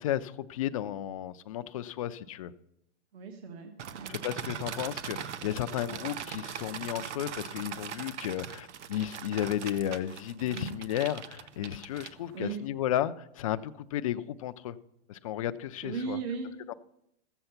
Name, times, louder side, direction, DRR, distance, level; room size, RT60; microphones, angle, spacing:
voice 1, 0.0-2.5 4.1-14.8 15.1-16.2 16.7-16.8, left 12 dB, 30° left, 12 dB, 0.4 m, -33 dB
voice 2, 3.1-4.2 10.4-10.8 12.3-12.6 15.8-16.5, right 5 dB, 60° right, 3 dB, 1.7 m, -37 dB
sound 1, 3.8-12.5, right 8 dB, 80° right, 0.9 m, -41 dB
14.0 x 7.9 x 5.7 m, 0.79 s
hypercardioid pair, 150°, 35 cm